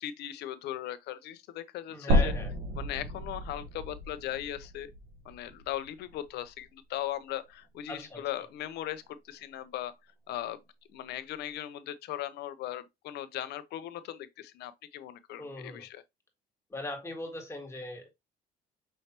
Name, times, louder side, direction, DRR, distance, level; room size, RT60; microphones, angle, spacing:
voice 1, 0.0-2.3 2.7-4.9 5.2-9.9 10.3-10.6 10.9-16.0, left 12 dB, 80° left, 0.7 m, -38 dB
voice 2, 1.9-2.5 7.9-8.2 15.4-15.9 16.7-18.1, left 2 dB, 15° left, 1.7 m, -39 dB
sound 1, 2.1-6.2 6.6-6.7 8.1-8.2, equal, 65° right, 1.3 m, -31 dB
5.4 x 3.3 x 2.9 m
cardioid pair, 110°, 17 cm